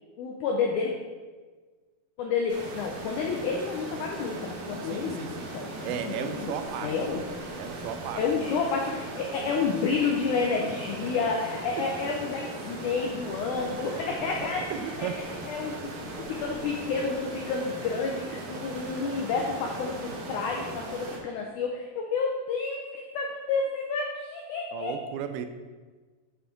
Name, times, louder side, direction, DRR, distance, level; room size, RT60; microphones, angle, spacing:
voice 1, 0.2-1.0 2.2-6.5 6.8-7.5 8.2-15.1 15.5-15.9 16.3-24.9, left 5 dB, 85° left, 0 dB, 1.7 m, -30 dB
sound 1, 2.5-21.2, right 2 dB, 70° right, 2.8 m, -39 dB
voice 2, 4.8-5.5 5.8-7.1 7.6-8.7 10.6-11.0 13.5-13.8 14.4-15.2 24.7-25.5, right 8 dB, 90° right, 8 dB, 2.6 m, -36 dB
8.0 x 5.9 x 3.7 m, 1.4 s
omnidirectional pair, 4.4 m